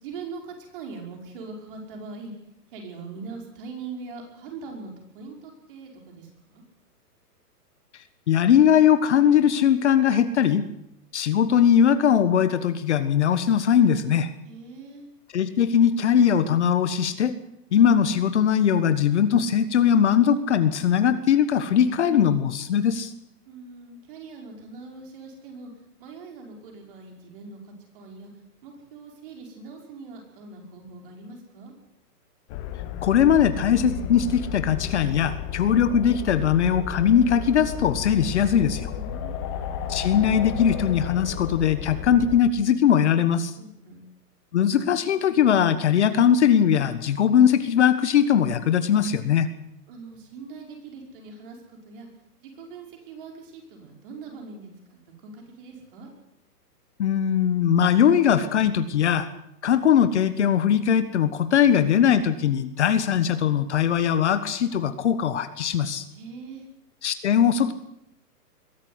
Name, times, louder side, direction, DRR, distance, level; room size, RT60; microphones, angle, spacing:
voice 1, 0.0-2.3 2.7-6.6 14.4-15.1 23.5-25.7 26.0-28.3 28.6-31.7 38.9-39.4 43.6-44.0 49.9-52.1 52.4-56.1 66.1-66.6, right 4 dB, 35° right, 2 dB, 5.4 m, -41 dB
voice 2, 8.3-10.6 11.1-14.3 15.3-17.3 17.7-23.1 33.0-38.9 39.9-43.5 44.5-49.5 57.0-59.3 59.6-66.0 67.0-67.7, left 8 dB, 45° left, 12 dB, 1.4 m, -20 dB
sound 1, 32.5-42.4, left 9 dB, 20° left, 1.4 m, -33 dB
22.0 x 13.5 x 9.6 m, 0.80 s
hypercardioid pair, 165°, 48 cm